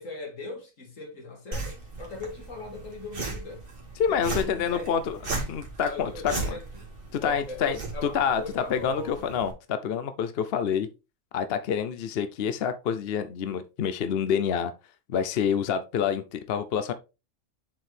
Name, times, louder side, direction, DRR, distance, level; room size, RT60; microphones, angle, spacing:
voice 1, 0.0-3.6 4.1-4.9 5.8-6.9 7.2-9.3, left 3 dB, 75° left, 2.4 m, -39 dB
sound 1, 1.5-9.5, right 3 dB, 45° right, 2.2 m, -37 dB
voice 2, 4.0-5.2 5.5-6.3 7.1-7.8 8.1-10.9 11.3-14.7 15.1-16.9, left 7 dB, 55° left, 0.7 m, -27 dB
7.4 x 4.5 x 3.3 m
omnidirectional pair, 1.4 m